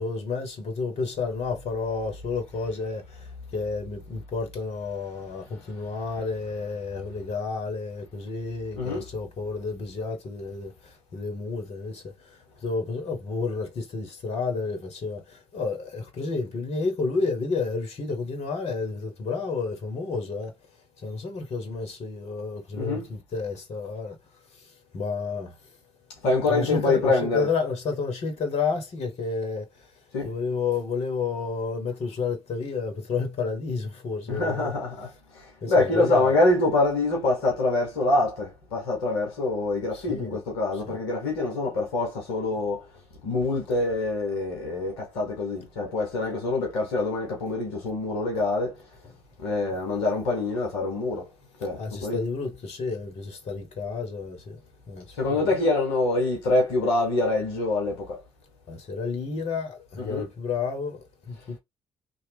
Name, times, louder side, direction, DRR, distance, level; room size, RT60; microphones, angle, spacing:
voice 1, 0.0-20.5 21.0-24.2 24.5-25.7 26.5-29.9 30.2-34.7 35.6-36.3 39.9-40.4 40.7-41.0 51.8-54.6 54.9-55.5 58.7-61.6, left 4 dB, 50° left, 1.2 m, -31 dB
voice 2, 8.7-9.1 22.7-23.1 26.2-27.5 30.1-30.3 34.3-42.8 43.2-48.7 49.4-51.3 51.6-52.2 55.2-58.2 60.0-60.2, left 2 dB, 75° left, 1.0 m, -25 dB
2.9 x 2.4 x 3.4 m
figure-of-eight pair, 45°, 13 cm